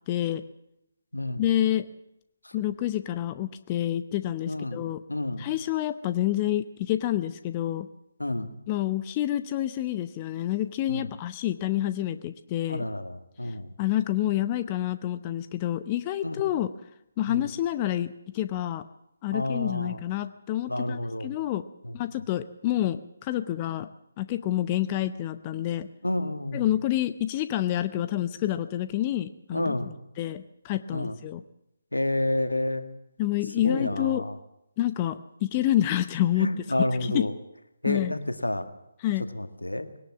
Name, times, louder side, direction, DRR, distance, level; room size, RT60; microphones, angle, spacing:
voice 1, 0.1-0.4 1.4-1.9 2.5-5.0 5.4-7.9 8.7-12.9 13.8-16.7 17.2-18.8 19.2-21.7 21.9-23.9 24.2-25.9 26.5-29.8 30.2-31.4 33.2-34.2 34.8-36.5 37.0-37.3 37.9-38.2 39.0-39.2, left 13 dB, 25° left, 11 dB, 0.7 m, -28 dB
voice 2, 4.5-5.5 8.2-8.5 10.9-11.1 12.7-13.7 16.2-16.4 17.3-17.4 19.3-20.0 20.7-21.3 21.8-22.0 26.0-26.7 29.5-29.9 30.9-31.1 31.9-32.9 33.6-34.3 36.4-37.3 37.8-38.7 39.3-39.9, left 1 dB, 90° left, 8 dB, 1.9 m, -29 dB
20.0 x 18.0 x 7.3 m, 0.83 s
figure-of-eight pair, 145°, 0 cm